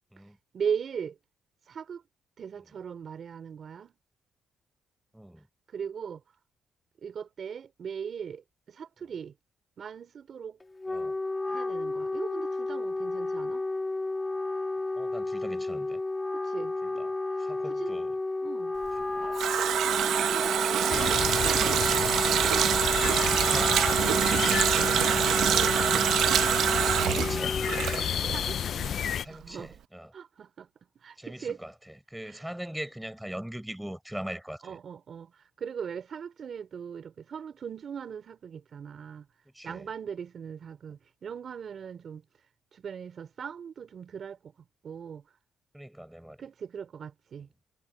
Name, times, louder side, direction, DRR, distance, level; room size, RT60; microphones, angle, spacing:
voice 1, 0.5-1.2 1.7-2.0 2.4-3.9 5.7-6.2 7.0-9.3 9.8-10.6 11.5-13.7 16.3-17.0 17.4-17.9 18.4-18.8 20.0-21.3 26.2-27.3 28.2-28.6 29.3-29.8 30.1-30.7 31.0-31.6 32.2-32.4 34.6-39.3 39.6-42.3 42.7-45.4 46.4-47.5, right 7 dB, 55° right, 3.7 m, -39 dB
voice 2, 5.1-5.5 10.9-11.2 15.0-16.0 16.8-17.1 17.4-18.2 26.7-27.5 29.2-30.1 31.2-34.8 39.5-39.9 45.7-46.4, right 1 dB, 5° right, 5.2 m, -41 dB
Wind instrument woodwind instrument, 10.6-28.1, left 2 dB, 20° left, 3.0 m, -32 dB
Water tap faucet, 18.9-28.5 28.8-28.9, right 10 dB, 75° right, 1.3 m, -25 dB
sound 1, 20.9-29.2, left 8 dB, 60° left, 0.4 m, -31 dB
cardioid pair, 90°, 0 cm